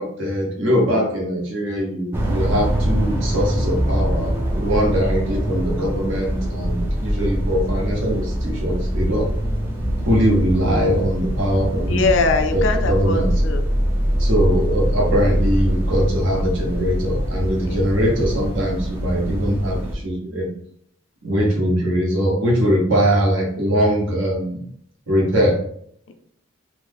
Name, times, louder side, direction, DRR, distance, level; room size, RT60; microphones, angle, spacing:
voice 1, 0.0-9.3 10.1-12.0 12.5-13.3 14.2-20.5 21.2-24.6 25.1-25.6, equal, 65° right, -2 dB, 1.0 m, -21 dB
sound 1, 2.1-20.0, equal, 10° right, 0.4 m, -23 dB
voice 2, 11.9-13.6 17.6-18.0, left 4 dB, 60° left, 6 dB, 0.4 m, -22 dB
3.1 x 2.1 x 3.4 m, 0.67 s
head